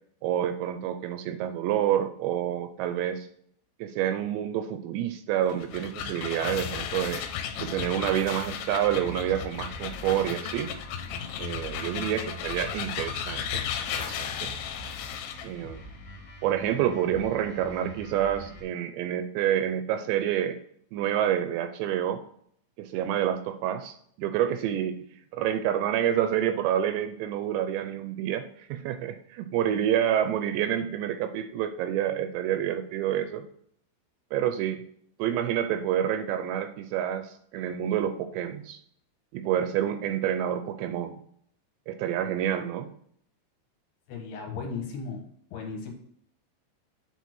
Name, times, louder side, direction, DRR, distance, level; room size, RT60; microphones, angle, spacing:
voice 1, 0.2-3.3 3.8-7.2 7.6-10.7 11.4-13.6 13.9-14.5 15.4-15.8 16.4-20.6 20.9-22.2 22.8-25.0 25.3-33.4 34.3-34.8 35.2-38.8 39.3-41.2 41.9-42.9, right 10 dB, 80° right, 9 dB, 2.6 m, -28 dB
sound 1, 5.4-15.5, left 9 dB, 85° left, 3.0 m, -35 dB
sound 2, 6.6-18.6, right 1 dB, 50° left, 1.3 m, -44 dB
voice 2, 44.1-45.2 45.5-45.9, left 5 dB, 70° left, 2 dB, 2.8 m, -35 dB
8.3 x 4.3 x 6.0 m, 0.64 s
omnidirectional pair, 5.3 m